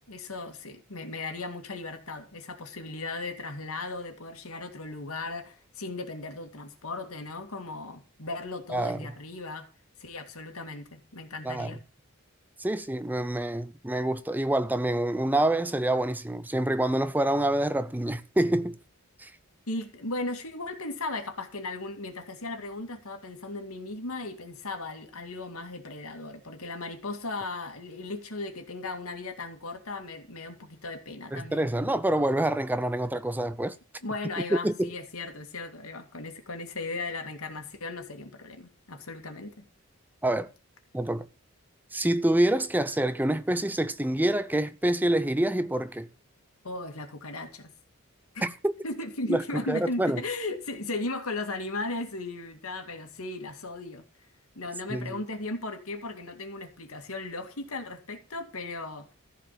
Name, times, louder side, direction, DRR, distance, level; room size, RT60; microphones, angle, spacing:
voice 1, 0.1-9.7 10.0-11.8 19.7-31.7 34.0-39.6 46.6-47.7 48.3-48.4 48.8-54.0 54.6-59.1, left 2 dB, 90° left, 2.2 m, -36 dB
voice 2, 12.6-18.8 19.2-19.3 31.3-33.8 34.6-34.9 40.2-40.5 40.9-41.2 41.9-46.1 48.4-48.7 49.3-49.4 49.7-50.2 54.9-55.2, right 1 dB, 10° right, 0.5 m, -26 dB
14.5 x 5.0 x 6.7 m
head